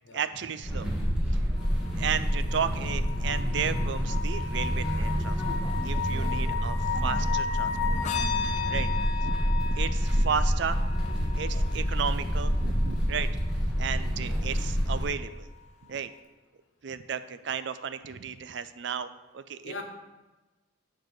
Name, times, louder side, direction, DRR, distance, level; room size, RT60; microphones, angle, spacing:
voice 1, 0.1-0.9 1.3-1.4 2.0-8.0 8.7-10.8 11.3-13.3 13.7-15.5 15.8-16.1 16.8-19.1 19.3-19.8, right 7 dB, 55° right, 12 dB, 0.4 m, -34 dB
sound 1, 0.6-15.0, equal, 5° right, 1.5 m, -28 dB
sound 2, 1.6-13.6 15.0-15.1, left 6 dB, 35° left, 0.6 m, -35 dB
voice 2, 6.1-6.4 11.5-11.8 13.1-13.3 19.6-19.8, left 2 dB, 65° left, 3 dB, 1.1 m, -44 dB
9.0 x 4.1 x 6.4 m, 1.2 s
head